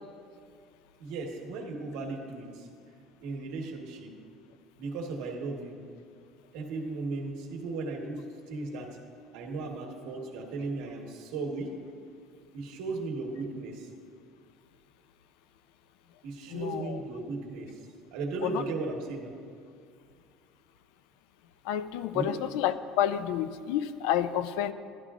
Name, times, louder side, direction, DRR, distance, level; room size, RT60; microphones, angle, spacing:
voice 1, 1.0-2.7 3.2-4.1 4.8-5.8 6.5-8.9 9.3-11.7 12.5-13.9 16.2-17.8 18.1-19.3 22.1-22.4, right 3 dB, 80° right, 0 dB, 1.3 m, -36 dB
voice 2, 16.5-17.0 18.4-18.6 21.6-24.7, left 10 dB, 85° left, 13 dB, 0.4 m, -29 dB
11.5 x 11.0 x 2.4 m, 2.2 s
cardioid pair, 140°, 0 cm